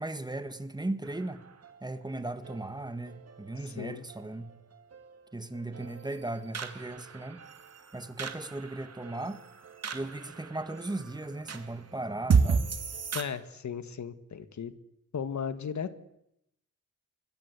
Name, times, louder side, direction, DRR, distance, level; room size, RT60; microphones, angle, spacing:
voice 1, 0.0-1.4 1.8-4.5 5.3-7.4 7.9-9.4 9.9-12.6, right 2 dB, 15° right, 11 dB, 1.6 m, -37 dB
sound 1, 1.0-13.2, right 5 dB, 55° right, 2.3 m, -34 dB
voice 2, 3.6-4.0 13.1-14.7 15.1-16.0, left 7 dB, 70° left, 12 dB, 1.7 m, -36 dB
25.5 x 21.5 x 8.3 m, 0.79 s
wide cardioid pair, 165°, 30 cm